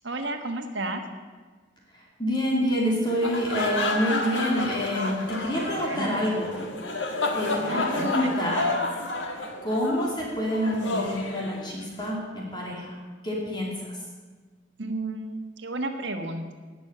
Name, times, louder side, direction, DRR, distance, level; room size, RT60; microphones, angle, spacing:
voice 1, 0.0-1.0 5.6-6.1 7.6-8.3 14.8-16.5, right 2 dB, 70° right, 5 dB, 1.4 m, -32 dB
voice 2, 1.9-6.6 7.3-8.7 9.6-12.9 13.2-13.9, equal, 25° left, -3 dB, 2.7 m, -27 dB
sound 1, 3.1-12.1, left 2 dB, 75° left, 1.7 m, -30 dB
17.5 x 6.3 x 8.0 m, 1.4 s
head